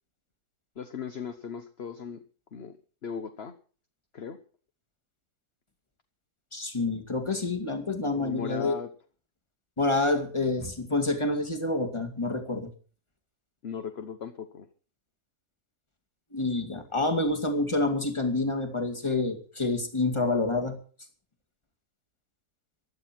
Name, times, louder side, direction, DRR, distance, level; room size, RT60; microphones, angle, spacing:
voice 1, 0.8-2.2 2.5-2.8 3.0-3.5 4.1-4.4 8.1-8.9 13.6-14.7, left 6 dB, 45° left, 8 dB, 1.2 m, -37 dB
voice 2, 6.5-8.8 9.8-12.7 16.3-20.8, left 2 dB, 20° left, 7 dB, 2.2 m, -28 dB
16.0 x 12.0 x 5.9 m, 0.39 s
omnidirectional pair, 1.7 m